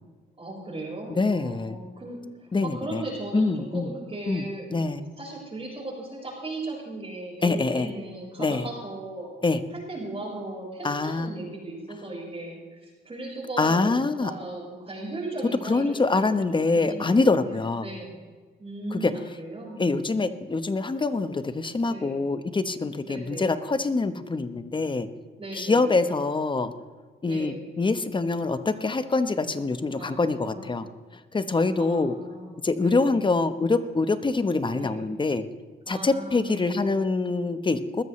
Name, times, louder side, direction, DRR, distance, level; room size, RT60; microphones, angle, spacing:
voice 1, 0.4-4.8 5.2-9.3 9.7-13.9 14.2-16.0 16.6-18.2 18.6-20.1 21.9-22.2 23.0-23.5 25.4-26.0 27.2-27.7 29.9-30.9 31.8-33.2 34.7-35.0 35.9-36.8, right 2 dB, 30° right, -7 dB, 5.0 m, -37 dB
voice 2, 1.1-1.8 2.5-3.0 3.3-3.9 4.3-4.5 4.7-5.0 7.4-7.9 8.4-8.7 9.4-9.6 10.8-11.3 13.6-14.3 15.6-17.9 18.9-19.1 19.8-25.1 25.5-26.7 27.2-30.9 31.3-32.1 32.6-35.4 35.9-38.0, left 3 dB, 25° left, 11 dB, 1.0 m, -25 dB
20.5 x 13.5 x 3.2 m, 1.4 s
cardioid pair, 90°, 20 cm